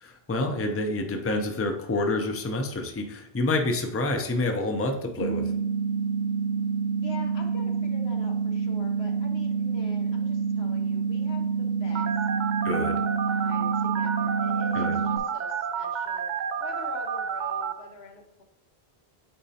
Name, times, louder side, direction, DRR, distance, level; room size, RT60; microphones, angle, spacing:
voice 1, 0.0-5.4 12.6-13.0 14.7-15.0, left 2 dB, 20° left, 4 dB, 0.5 m, -28 dB
sound 1, 5.2-15.2, right 6 dB, 80° right, 1.0 m, -27 dB
voice 2, 7.0-12.1 13.3-18.4, left 2 dB, 85° left, 3 dB, 1.2 m, -45 dB
Telephone, 11.9-17.7, right 7 dB, 55° right, 0.5 m, -30 dB
8.8 x 4.2 x 2.8 m, 0.78 s
omnidirectional pair, 1.0 m